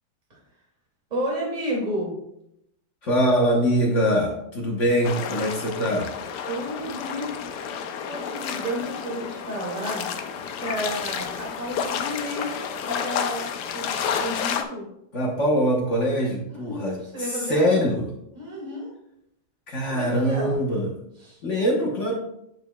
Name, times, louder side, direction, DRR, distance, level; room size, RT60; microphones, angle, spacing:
voice 1, 1.1-2.1 6.4-7.5 8.1-10.1 10.6-12.5 12.8-13.4 13.7-14.9 16.5-17.8 18.4-18.9 19.9-20.6 21.2-21.4, equal, 20° right, -4 dB, 2.3 m, -31 dB
voice 2, 3.0-6.1 15.1-18.0 19.7-20.9 21.4-22.1, equal, 45° left, -1 dB, 1.1 m, -23 dB
sound 1, 5.0-14.6, left 7 dB, 70° left, 1.0 m, -30 dB
8.2 x 6.9 x 2.2 m, 0.79 s
omnidirectional pair, 2.2 m